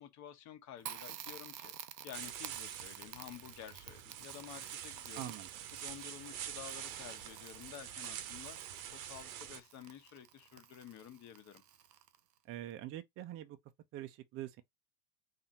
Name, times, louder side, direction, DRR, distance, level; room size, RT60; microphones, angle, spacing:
voice 1, 0.0-1.7 2.0-5.3 5.7-11.6, left 10 dB, 35° left, 1.0 m, -51 dB
Crackle, 0.8-12.4, right 10 dB, 85° right, 0.7 m, -52 dB
sound 1, 2.1-9.6, right 10 dB, 60° right, 0.9 m, -46 dB
voice 2, 5.2-5.5 12.5-13.6 13.9-14.6, right 13 dB, 30° right, 0.5 m, -44 dB
4.2 x 2.8 x 4.2 m
figure-of-eight pair, 85°, 48 cm